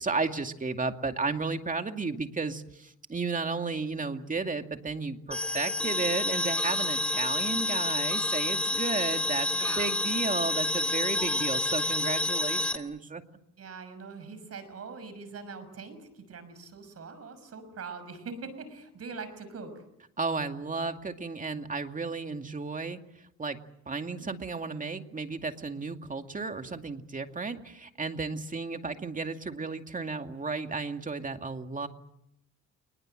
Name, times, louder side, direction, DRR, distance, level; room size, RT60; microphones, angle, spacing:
voice 1, 0.0-13.2 20.2-23.0 23.4-23.6 23.9-31.9, right 4 dB, 25° right, 6 dB, 2.3 m, -33 dB
sound 1, 5.3-12.8, left 2 dB, 5° left, 2.9 m, -29 dB
voice 2, 9.5-9.9 13.6-19.8, right 4 dB, 55° right, 12 dB, 6.1 m, -42 dB
29.5 x 20.5 x 7.8 m, 0.78 s
cardioid pair, 90°, 30 cm